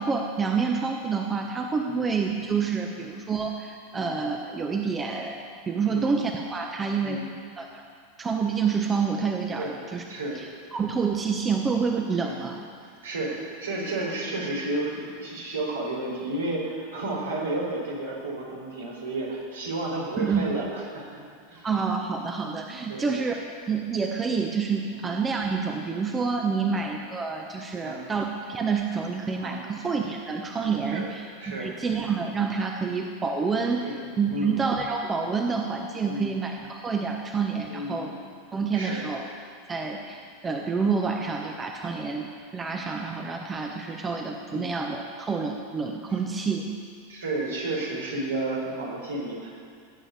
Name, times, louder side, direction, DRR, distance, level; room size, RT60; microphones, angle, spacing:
voice 1, 0.0-5.4 5.7-7.2 7.6-7.8 8.2-10.0 10.3-10.5 10.7-12.6 20.2-20.4 21.6-23.4 23.7-33.9 34.2-38.1 38.5-39.3 39.7-46.7, right 5 dB, 20° right, 2 dB, 1.2 m, -28 dB
voice 2, 13.0-21.2 21.5-21.7 22.9-23.1 24.9-25.1 27.8-28.2 29.4-29.6 30.9-31.1 31.4-31.7 33.8-34.0 34.3-34.6 36.1-36.3 37.7-38.1 38.7-39.1 44.5-44.7 46.3-46.4 47.1-49.5, right 2 dB, 75° right, -3 dB, 4.4 m, -32 dB
16.0 x 9.1 x 6.8 m, 2.2 s
figure-of-eight pair, 85°, 0 cm